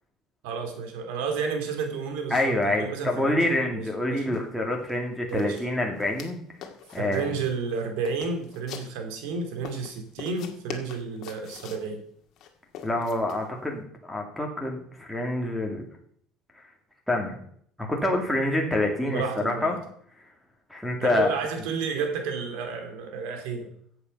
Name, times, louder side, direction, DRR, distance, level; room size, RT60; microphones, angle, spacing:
voice 1, 0.4-4.4 5.3-5.6 7.0-12.0 19.1-19.8 21.0-23.7, right 5 dB, 90° right, 5 dB, 2.8 m, -31 dB
voice 2, 2.3-6.4 6.9-7.3 12.8-15.9 17.1-17.4 17.8-19.8 20.7-21.3, left 1 dB, ahead, 0 dB, 2.3 m, -27 dB
sound 1, 4.3-4.4 4.7-5.0 5.3-6.3 6.6-7.4 7.7-9.2 9.6-11.9 12.4-13.5, left 8 dB, 55° left, 1.9 m, -42 dB
14.0 x 7.9 x 5.4 m, 0.63 s
cardioid pair, 145°, 0 cm